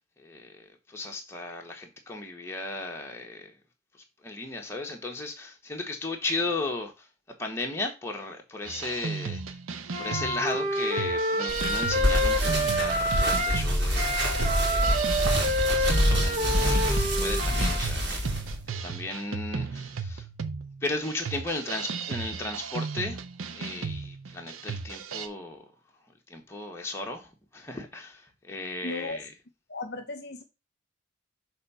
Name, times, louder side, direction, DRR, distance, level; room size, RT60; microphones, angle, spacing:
voice 1, 0.2-3.6 3.9-7.1 7.4-9.6 10.0-15.0 15.6-18.2 18.8-20.3 20.8-23.2 23.5-25.7 26.3-29.3, left 2 dB, 10° left, 1.4 m, -36 dB
sound 1, 8.7-25.3, right 5 dB, 85° right, 0.7 m, -35 dB
Wind instrument woodwind instrument, 9.9-13.7 14.0-17.8, equal, 35° right, 1.2 m, -28 dB
sound 2, 11.5-18.5, equal, 55° right, 2.4 m, -26 dB
voice 2, 28.8-29.2 29.7-30.4, left 2 dB, 50° left, 1.0 m, -35 dB
6.5 x 3.6 x 5.6 m
head